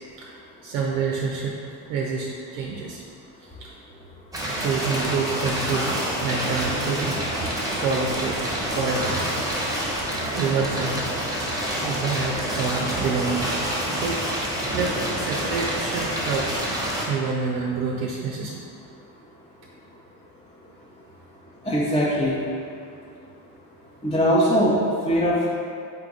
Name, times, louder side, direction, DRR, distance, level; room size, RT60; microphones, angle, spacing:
voice 1, 0.2-1.6 1.9-3.0 3.4-3.7 4.6-8.4 8.8-9.3 10.0-10.1 10.3-11.1 11.8-13.5 13.9-16.6 17.1-18.6, right 4 dB, 75° right, -2 dB, 0.6 m, -28 dB
sound 1, 4.3-17.1, right 1 dB, 5° right, 1.1 m, -27 dB
voice 2, 21.6-22.4 24.0-25.5, equal, 10° left, -6 dB, 0.6 m, -21 dB
3.6 x 2.8 x 3.7 m, 2.4 s
hypercardioid pair, 60°, 50 cm